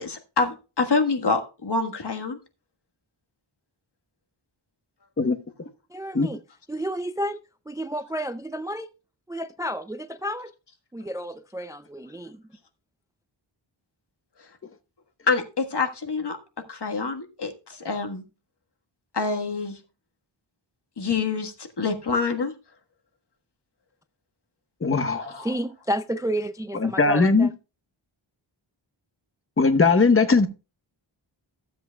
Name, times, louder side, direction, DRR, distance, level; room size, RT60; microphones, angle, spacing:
voice 1, 0.0-2.4 15.3-16.4 16.7-18.2 19.1-19.8 21.0-22.5 25.2-25.5, left 4 dB, 55° left, 1.5 m, -26 dB
voice 2, 5.9-6.4 6.7-7.4 7.7-8.9 9.3-10.5 10.9-12.4 25.4-27.5, right 1 dB, 10° right, 0.4 m, -31 dB
voice 3, 24.8-25.4 26.7-27.5 29.6-30.5, left 4 dB, 25° left, 0.9 m, -19 dB
15.0 x 7.8 x 2.3 m
wide cardioid pair, 95°, 48 cm